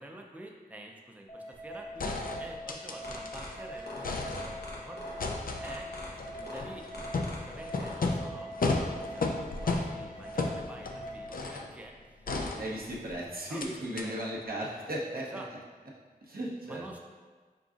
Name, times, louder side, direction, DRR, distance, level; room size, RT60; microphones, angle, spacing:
voice 1, 0.0-6.9 7.4-8.5 8.8-12.3 13.5-14.2 15.2-15.5 16.6-17.0, right 1 dB, 10° right, 1 dB, 0.4 m, -48 dB
sound 1, 1.3-11.3, equal, 40° left, 0.8 m, -44 dB
sound 2, 1.5-1.6 2.0-3.5 3.8-4.8 5.2-11.7 12.3-13.1 13.6-13.7 14.0-14.1, left 3 dB, 60° left, 0.4 m, -34 dB
sound 3, 2.9-7.9, left 1 dB, 85° left, 0.9 m, -43 dB
voice 2, 12.5-15.2 16.3-16.8, right 1 dB, 65° right, -5 dB, 0.8 m, -36 dB
4.6 x 3.8 x 2.4 m, 1.4 s
wide cardioid pair, 55°, 16 cm